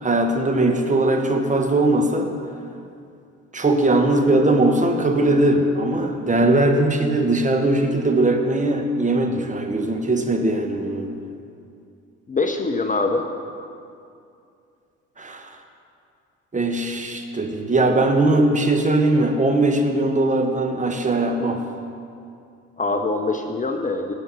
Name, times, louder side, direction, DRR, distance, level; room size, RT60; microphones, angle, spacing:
voice 1, 0.0-2.3 3.5-11.1 15.2-15.5 16.5-21.6, right 2 dB, 20° right, 5 dB, 1.4 m, -20 dB
voice 2, 12.3-13.3 22.8-24.1, left 3 dB, 20° left, 5 dB, 0.9 m, -23 dB
18.0 x 8.1 x 4.2 m, 2.5 s
hypercardioid pair, 55°, 35 cm